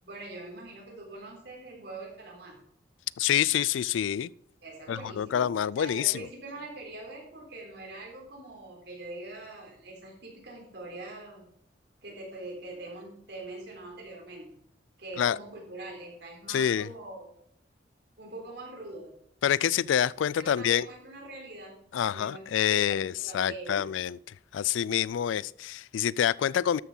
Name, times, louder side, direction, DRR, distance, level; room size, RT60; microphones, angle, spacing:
voice 1, 0.0-2.6 4.6-5.5 5.8-11.5 12.0-14.5 15.0-17.3 18.2-19.1 20.4-21.8 22.0-23.9, right 2 dB, 60° right, 3.8 m, -43 dB
voice 2, 3.2-4.3 4.9-6.1 15.2-15.4 16.5-16.9 19.4-20.9 21.9-24.2 24.5-26.8, left 9 dB, 85° left, 0.3 m, -27 dB
13.0 x 6.1 x 5.6 m
head